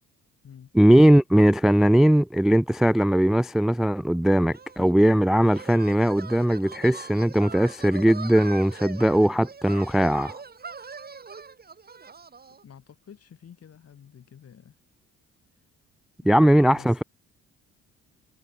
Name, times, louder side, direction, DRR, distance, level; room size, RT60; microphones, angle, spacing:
voice 1, 0.7-10.3 16.2-17.0, right 1 dB, ahead, 0.3 m, -19 dB
sound 1, 4.5-12.6, right 5 dB, 30° right, 2.5 m, -42 dB
voice 2, 12.6-14.7 16.3-17.0, left 8 dB, 55° left, 5.5 m, -49 dB
cardioid pair, 90°, 30 cm